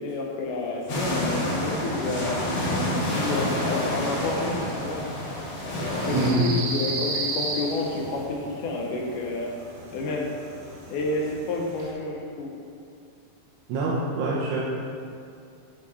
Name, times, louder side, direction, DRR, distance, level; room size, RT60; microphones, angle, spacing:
voice 1, 0.0-2.4 3.1-5.1 5.6-9.5 9.9-10.3 10.9-12.5, left 2 dB, 75° left, -1 dB, 2.0 m, -30 dB
sound 1, 0.9-6.3, left 1 dB, 50° left, 1.9 m, -28 dB
sound 2, 1.8-11.9, right 2 dB, 65° right, 3.0 m, -37 dB
voice 2, 6.1-6.4 13.7-14.6, right 3 dB, 90° right, -6 dB, 3.0 m, -25 dB
10.5 x 5.0 x 4.2 m, 2.4 s
omnidirectional pair, 4.5 m